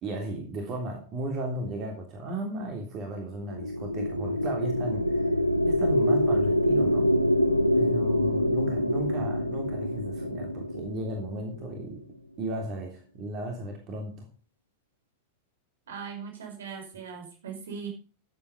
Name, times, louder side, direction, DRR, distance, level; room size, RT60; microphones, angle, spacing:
voice 1, 0.0-5.3 5.7-7.1 7.7-12.0 12.4-14.3, right 1 dB, 35° right, 2 dB, 3.3 m, -35 dB
sound 1, 3.3-11.9, equal, 90° left, 0.8 m, -26 dB
voice 2, 15.9-17.9, right 6 dB, 65° right, 3 dB, 5.3 m, -39 dB
14.0 x 8.7 x 5.1 m, 0.37 s
figure-of-eight pair, 90°, 0 cm